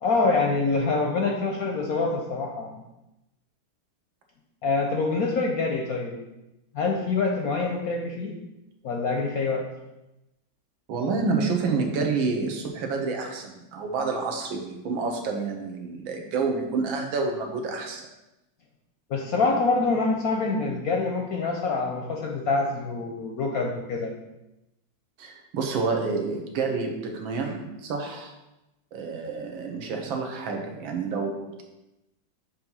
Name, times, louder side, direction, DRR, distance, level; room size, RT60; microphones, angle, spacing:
voice 1, 0.0-2.7 4.6-6.2 6.7-8.3 8.8-9.7 19.1-24.1, left 3 dB, 65° left, 1 dB, 0.9 m, -25 dB
voice 2, 10.9-18.1 25.2-28.3 28.9-31.6, right 4 dB, 80° right, 3 dB, 1.7 m, -28 dB
7.4 x 2.9 x 5.4 m, 0.94 s
omnidirectional pair, 2.2 m